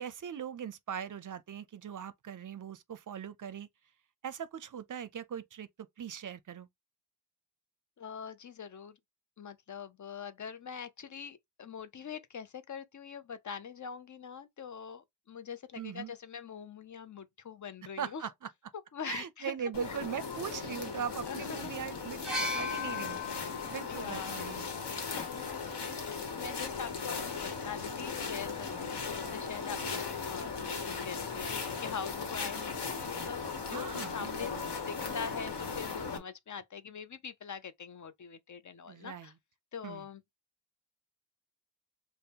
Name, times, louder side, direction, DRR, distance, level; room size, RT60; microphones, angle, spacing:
voice 1, 0.0-3.7 4.2-6.7 15.8-16.1 18.0-18.5 19.1-23.4 23.7-24.7 33.7-34.5 38.9-39.3 39.8-40.0, right 8 dB, 50° right, 0.5 m, -40 dB
voice 2, 8.0-9.0 9.4-18.3 18.9-19.6 19.9-20.0 21.2-21.7 23.6-24.4 24.9-33.4 33.7-34.5 34.9-39.3 39.7-40.2, left 6 dB, 45° left, 0.5 m, -43 dB
sound 1, 19.7-36.2, left 5 dB, 75° left, 1.1 m, -38 dB
sound 2, 22.2-26.0 27.1-27.2, left 3 dB, ahead, 1.1 m, -39 dB
5.2 x 2.1 x 2.8 m
wide cardioid pair, 130°, 41 cm